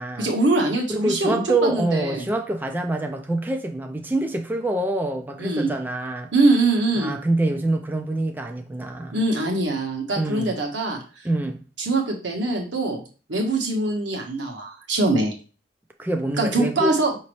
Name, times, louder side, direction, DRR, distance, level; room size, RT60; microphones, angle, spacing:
voice 1, 0.2-2.3 5.4-5.7 6.3-7.1 9.1-11.2 11.8-13.0 13.3-15.3 16.4-17.1, right 2 dB, 85° right, 1.1 m, -23 dB
voice 2, 0.9-6.3 7.0-9.2 10.1-10.5 11.2-11.6 16.0-17.0, right 2 dB, 10° right, 0.3 m, -25 dB
5.0 x 2.9 x 3.0 m
head